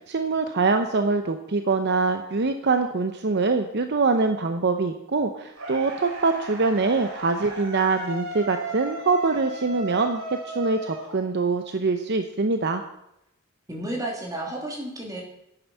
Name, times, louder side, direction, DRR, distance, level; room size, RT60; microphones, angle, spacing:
voice 1, 0.1-12.8, right 3 dB, 50° right, 7 dB, 0.7 m, -24 dB
sound 1, 5.6-11.7, right 2 dB, 80° right, 3.6 m, -36 dB
voice 2, 13.7-15.2, right 1 dB, 15° right, -2 dB, 3.0 m, -32 dB
10.5 x 8.9 x 5.6 m, 0.81 s
head